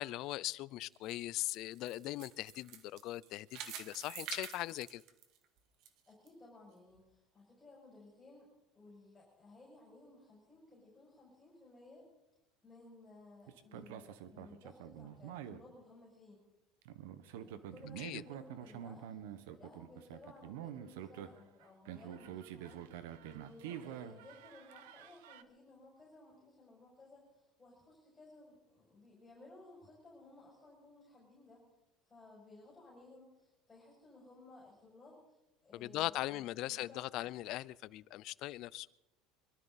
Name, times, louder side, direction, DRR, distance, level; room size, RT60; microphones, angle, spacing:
voice 1, 0.0-5.0 18.0-18.2 35.7-38.9, left 16 dB, 55° left, 0.5 m, -40 dB
sound 1, 0.9-5.9 6.3-6.4 7.0-7.1, right 9 dB, 55° right, 1.7 m, -48 dB
voice 2, 6.1-8.5 8.7-12.1 12.6-16.4 17.3-22.8 23.3-31.6 32.1-37.3, left 2 dB, 15° left, 6.1 m, -58 dB
sound 2, 13.5-15.6 16.8-25.4, right 10 dB, 90° right, 1.2 m, -47 dB
24.0 x 13.0 x 4.1 m
supercardioid pair, 140°, 0 cm